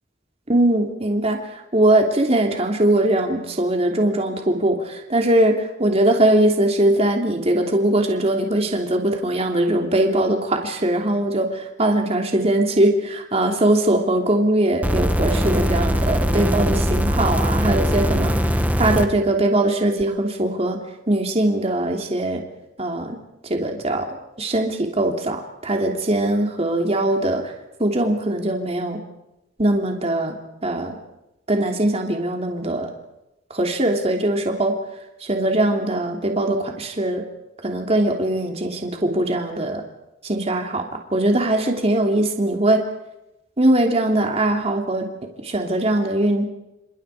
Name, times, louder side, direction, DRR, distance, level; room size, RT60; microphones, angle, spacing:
voice 1, 0.5-1.4 1.7-20.8 21.1-22.4 22.8-23.2 23.5-25.4 25.6-27.5 27.8-29.0 29.6-30.3 30.6-31.0 31.5-32.9 33.5-34.7 35.2-37.2 37.6-39.8 40.2-42.8 43.6-45.1 45.4-46.4, right 1 dB, 35° right, 2 dB, 3.1 m, -21 dB
sound 1, 14.8-19.1 20.0-20.1, equal, 10° right, 1.5 m, -20 dB
29.0 x 27.5 x 5.0 m, 0.92 s
head